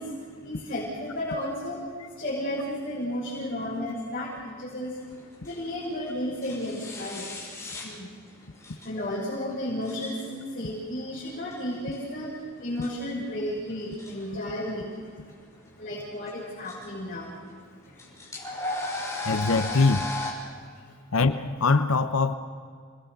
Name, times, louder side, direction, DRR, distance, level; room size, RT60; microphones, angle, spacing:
voice 1, 0.0-5.0 5.4-7.3 7.8-8.1 8.8-15.3 15.8-18.5 18.8-19.1 20.5-21.0, left 1 dB, 40° left, 6.8 m, -34 dB
sound 1, 5.0-20.3, left 2 dB, 15° left, 6.0 m, -37 dB
voice 2, 19.2-20.1 21.1-22.3, left 3 dB, 75° left, 1.0 m, -22 dB
29.0 x 21.0 x 6.8 m
head